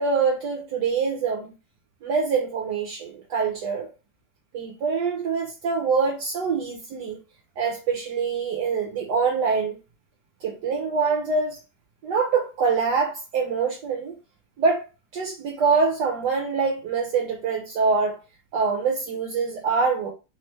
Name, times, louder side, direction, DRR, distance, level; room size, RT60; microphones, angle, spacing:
voice 1, 0.0-1.5 2.0-3.9 4.5-7.2 7.6-9.8 10.4-11.6 12.0-14.1 14.6-14.9 15.1-18.2 18.5-20.1, right 5 dB, 70° right, 1.2 m, -24 dB
3.5 x 3.1 x 3.1 m
omnidirectional pair, 2.0 m